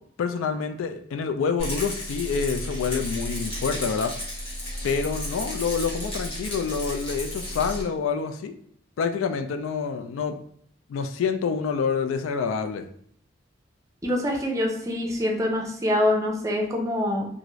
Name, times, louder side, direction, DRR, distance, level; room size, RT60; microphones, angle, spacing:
voice 1, 0.2-4.1 4.8-8.6 9.0-10.4 10.9-12.9, left 5 dB, 90° left, 8 dB, 0.3 m, -27 dB
Rattle, 1.6-7.8, left 1 dB, 30° left, 0.8 m, -33 dB
voice 2, 14.0-17.3, left 1 dB, 15° right, 0 dB, 0.5 m, -25 dB
2.5 x 2.4 x 3.0 m, 0.64 s
head